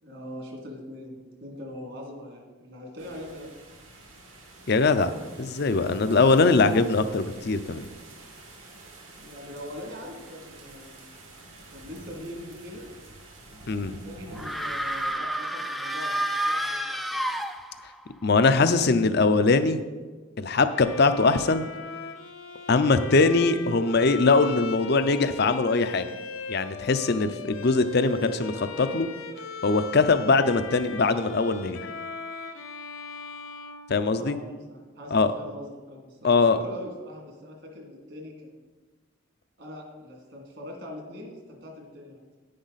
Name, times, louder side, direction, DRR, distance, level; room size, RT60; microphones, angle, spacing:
voice 1, 0.0-3.9 9.2-11.1 11.7-12.9 13.8-17.3 34.2-38.5 39.6-42.4, left 1 dB, 60° right, 0 dB, 2.4 m, -42 dB
sound 1, 3.0-15.1, right 2 dB, 75° right, 2.5 m, -48 dB
voice 2, 4.7-5.1 5.4-7.8 13.7-14.0 18.2-19.8 20.4-21.7 22.7-26.1 26.5-29.1 29.6-31.8 33.9-34.4 35.1-35.3 36.2-36.6, left 3 dB, 50° left, 10 dB, 0.6 m, -22 dB
sound 2, 14.4-18.0, right 1 dB, ahead, 0.4 m, -29 dB
Bowed string instrument, 20.7-34.6, left 4 dB, 80° left, 0.9 m, -38 dB
10.0 x 9.5 x 4.1 m, 1.3 s
head